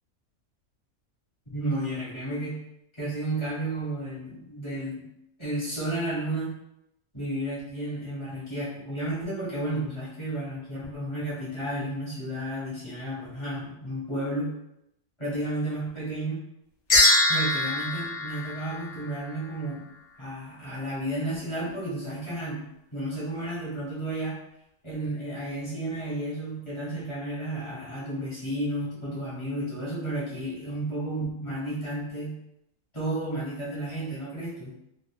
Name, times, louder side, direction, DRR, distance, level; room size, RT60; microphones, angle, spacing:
voice 1, 1.5-2.6 3.0-5.0 5.4-6.6 7.1-14.5 15.2-16.4 17.3-19.9 20.2-22.6 22.9-24.4 24.8-32.4 32.9-34.7, right 1 dB, 25° left, -9 dB, 0.9 m, -32 dB
sound 1, 16.9-19.4, left 2 dB, 60° left, 0.5 m, -23 dB
2.6 x 2.4 x 2.3 m, 0.81 s
omnidirectional pair, 1.6 m